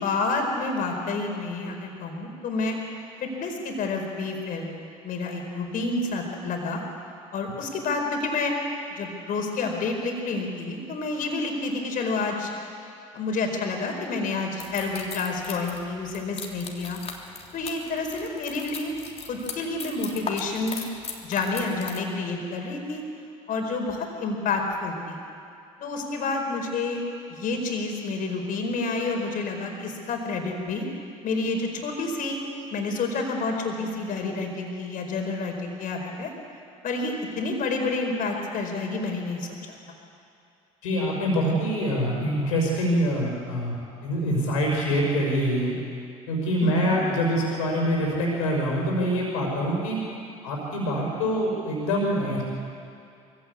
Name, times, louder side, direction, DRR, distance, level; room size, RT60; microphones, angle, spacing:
voice 1, 0.0-2.8 3.2-4.7 5.0-6.8 7.3-8.5 8.9-12.5 13.1-17.0 17.5-18.9 19.3-20.8 21.2-23.0 23.5-25.2 25.8-27.0 27.3-30.8 31.2-32.4 32.7-36.3 36.8-39.8 46.6-47.0, left 3 dB, 50° left, 3 dB, 4.4 m, -29 dB
sound 1, 14.6-22.0, left 5 dB, 35° left, 3.2 m, -38 dB
voice 2, 40.8-43.8 44.0-45.7 46.3-50.0 50.4-52.4, equal, 75° left, -1 dB, 5.5 m, -25 dB
22.5 x 16.5 x 8.5 m, 2.5 s
hypercardioid pair, 65°, 17 cm